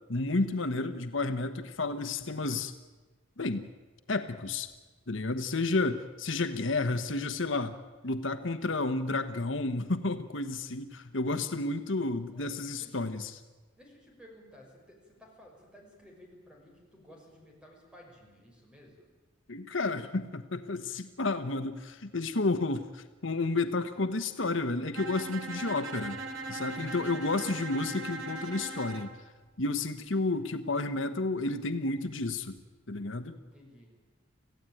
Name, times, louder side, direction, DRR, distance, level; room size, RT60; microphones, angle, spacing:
voice 1, 0.1-2.7 3.4-3.7 4.1-4.7 5.1-7.8 8.0-13.3 19.5-26.2 26.5-29.1 29.6-32.5 32.9-33.4, left 3 dB, 70° left, 8 dB, 1.2 m, -31 dB
voice 2, 12.3-13.1 13.7-19.1 26.7-27.1 33.3-34.0, equal, 5° right, 0 dB, 6.0 m, -55 dB
Bowed string instrument, 24.9-29.2, right 3 dB, 85° right, 2.6 m, -39 dB
26.0 x 16.0 x 9.2 m, 1.2 s
head